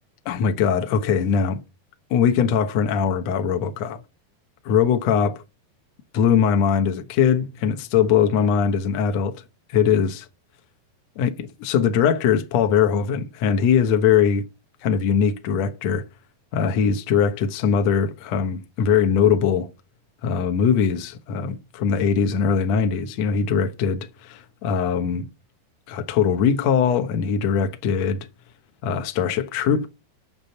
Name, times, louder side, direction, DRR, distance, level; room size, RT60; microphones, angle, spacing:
voice 1, 0.2-1.6 2.1-4.0 4.6-5.4 6.1-9.4 9.7-10.2 11.2-14.4 14.8-16.0 16.5-19.7 20.2-25.3 25.9-28.3 28.8-29.9, left 7 dB, 75° left, 1.5 m, -21 dB
8.8 x 6.1 x 8.2 m
omnidirectional pair, 4.8 m